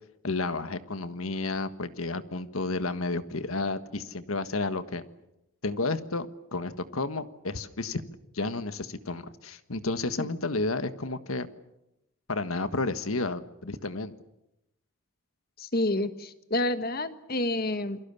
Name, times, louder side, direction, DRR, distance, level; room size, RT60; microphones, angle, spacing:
voice 1, 0.2-5.0 5.6-8.0 8.3-11.5 12.3-14.1, left 3 dB, 85° left, 11 dB, 1.5 m, -31 dB
voice 2, 15.6-18.0, left 1 dB, 45° left, 11 dB, 1.5 m, -29 dB
28.0 x 23.0 x 7.0 m, 0.87 s
head